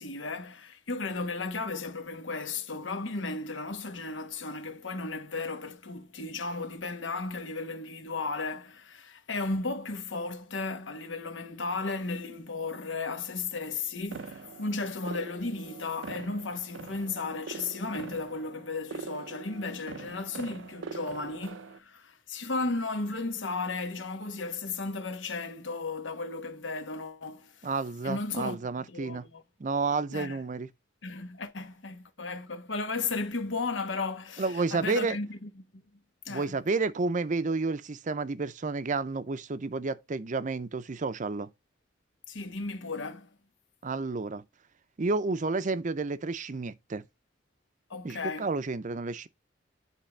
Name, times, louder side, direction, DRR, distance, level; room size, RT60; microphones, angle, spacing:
voice 1, 0.0-27.7 28.0-28.6 28.9-29.4 30.1-30.4 31.0-35.8 36.2-36.6 42.3-43.3 47.9-48.5, left 3 dB, 80° left, 1.2 m, -35 dB
sound 1, 14.1-21.8, right 5 dB, 85° right, 0.6 m, -43 dB
voice 2, 27.6-29.2 29.6-30.7 34.4-35.2 36.3-41.5 43.8-44.4 45.0-47.0 48.0-49.3, right 3 dB, 40° right, 0.5 m, -31 dB
10.0 x 3.7 x 3.3 m
head